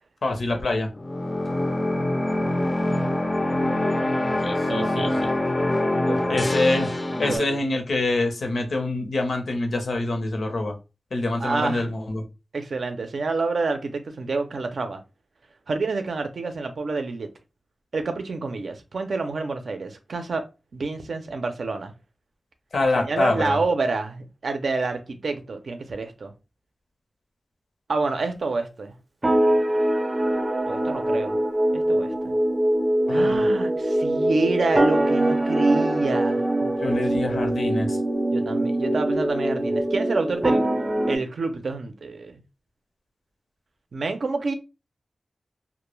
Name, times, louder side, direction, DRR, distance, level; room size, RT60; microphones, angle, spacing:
voice 1, 0.2-0.9 4.4-5.3 6.3-6.9 7.2-10.8 11.1-12.2 22.7-23.6 33.1-33.4 36.8-38.0, left 2 dB, 80° left, 0.6 m, -25 dB
sound 1, 1.0-7.4, left 1 dB, 30° left, 0.4 m, -24 dB
voice 2, 4.7-5.1 6.1-6.4 7.3-7.6 11.4-11.8 12.5-15.0 15.7-17.3 17.9-20.5 20.7-21.9 23.0-26.3 27.9-28.9 30.7-31.4 31.7-32.3 33.1-37.4 38.3-40.6 41.1-42.4 43.9-44.5, right 3 dB, 80° right, 0.5 m, -28 dB
sound 2, 29.2-41.2, right 1 dB, 30° right, 0.5 m, -23 dB
2.2 x 2.0 x 3.1 m
wide cardioid pair, 95°, 0 cm